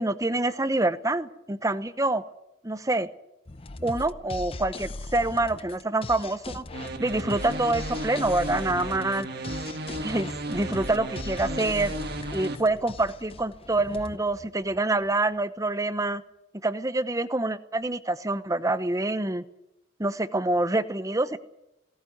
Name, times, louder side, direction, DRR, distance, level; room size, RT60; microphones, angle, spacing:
voice 1, 0.0-2.2 2.6-3.1 3.8-6.6 7.0-9.3 10.0-11.9 12.3-16.2 16.6-19.4 20.0-21.4, right 2 dB, 15° right, 13 dB, 0.9 m, -26 dB
sound 1, 3.5-15.1, left 2 dB, 30° left, 0.7 m, -39 dB
sound 2, 6.7-12.6, right 2 dB, 55° right, 1.7 m, -35 dB
18.0 x 17.0 x 9.3 m, 0.89 s
head